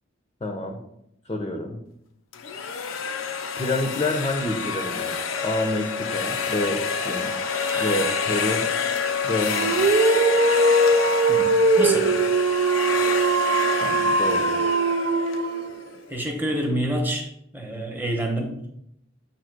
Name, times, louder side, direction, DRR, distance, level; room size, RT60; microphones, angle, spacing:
voice 1, 0.4-0.8 1.3-1.8 3.6-7.4 7.7-8.7 9.2-10.0 13.8-14.6, left 1 dB, 25° left, 3 dB, 0.6 m, -28 dB
sound 1, 2.3-16.2, left 6 dB, 85° left, 0.6 m, -28 dB
Dog, 9.5-15.8, right 3 dB, 55° right, 0.4 m, -21 dB
voice 2, 11.3-12.1 16.1-18.6, right 1 dB, 10° right, 2 dB, 1.0 m, -28 dB
7.5 x 2.9 x 6.0 m, 0.78 s
head